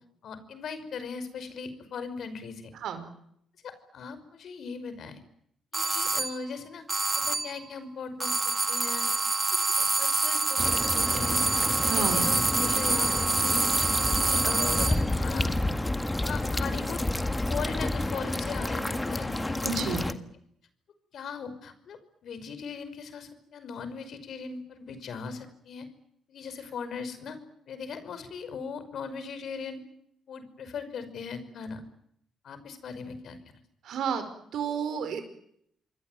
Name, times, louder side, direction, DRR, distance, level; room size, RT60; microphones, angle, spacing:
voice 1, 0.2-2.7 3.6-5.2 5.7-6.8 7.1-9.1 9.8-11.4 11.8-13.7 14.1-15.6 16.2-17.0 17.5-20.2 21.1-25.9 26.3-27.4 27.7-29.8 30.3-31.8 32.4-33.4, left 5 dB, 65° left, 12 dB, 5.5 m, -39 dB
voice 2, 2.7-3.1 11.8-12.3 19.6-20.0 33.8-35.2, right 6 dB, 75° right, 9 dB, 5.1 m, -31 dB
sound 1, 5.7-6.4 6.9-7.6 8.2-15.1, right 3 dB, 25° right, 1.8 m, -26 dB
sound 2, 10.6-20.1, left 1 dB, 10° left, 1.7 m, -30 dB
27.5 x 21.5 x 9.4 m, 0.72 s
cardioid pair, 90°, 0 cm